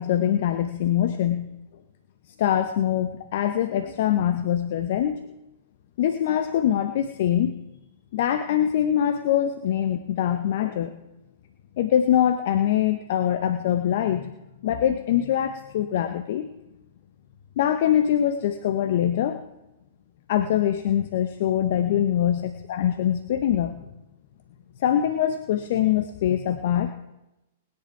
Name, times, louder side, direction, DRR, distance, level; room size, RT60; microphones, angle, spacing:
voice 1, 0.0-1.5 2.4-5.2 6.0-7.5 8.1-10.9 11.8-14.3 14.6-16.5 17.6-19.4 20.3-22.4 22.7-23.8 24.8-26.9, left 10 dB, 55° left, 9 dB, 0.8 m, -23 dB
20.5 x 9.8 x 4.6 m, 0.96 s
figure-of-eight pair, 105°, 0 cm